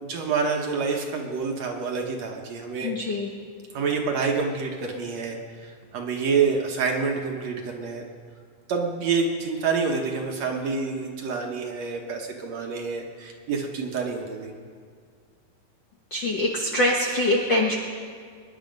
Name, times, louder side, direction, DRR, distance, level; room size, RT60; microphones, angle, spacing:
voice 1, 0.0-2.9 3.7-8.1 8.7-14.5, right 5 dB, 65° right, 2 dB, 2.0 m, -27 dB
voice 2, 2.8-3.3 16.1-17.8, left 1 dB, 60° left, -1 dB, 1.2 m, -23 dB
23.0 x 10.5 x 5.2 m, 2.1 s
omnidirectional pair, 3.9 m